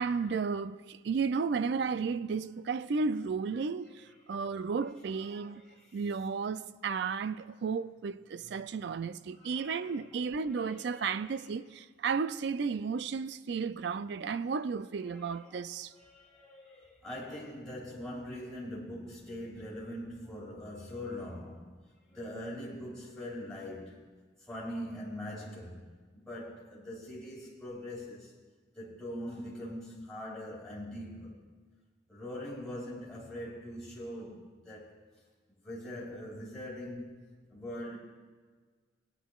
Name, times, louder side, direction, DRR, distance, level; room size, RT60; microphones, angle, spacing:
voice 1, 0.0-5.6 5.9-15.9, right 5 dB, 60° right, 0.3 m, -33 dB
voice 2, 5.3-6.0 9.4-11.4 15.0-15.7 15.9-21.8 22.1-24.0 24.4-25.9 26.1-28.3 28.7-31.4 32.1-34.9 35.6-37.2 37.5-38.0, left 1 dB, 5° left, 2.6 m, -43 dB
18.0 x 10.0 x 2.4 m
head